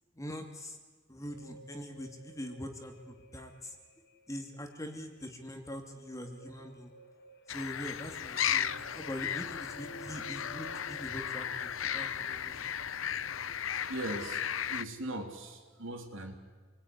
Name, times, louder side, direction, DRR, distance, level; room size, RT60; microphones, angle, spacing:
voice 1, 0.1-0.8 1.1-3.8 4.3-6.9 7.5-12.7, equal, 15° left, 4 dB, 2.7 m, -43 dB
sound 1, 1.2-12.7, equal, 55° left, 1.9 m, -54 dB
sound 2, 7.5-14.8, left 9 dB, 70° left, 0.8 m, -35 dB
voice 2, 13.9-14.4 14.7-16.3, right 1 dB, 70° right, 4 dB, 3.7 m, -39 dB
28.0 x 20.5 x 9.8 m, 1.4 s
head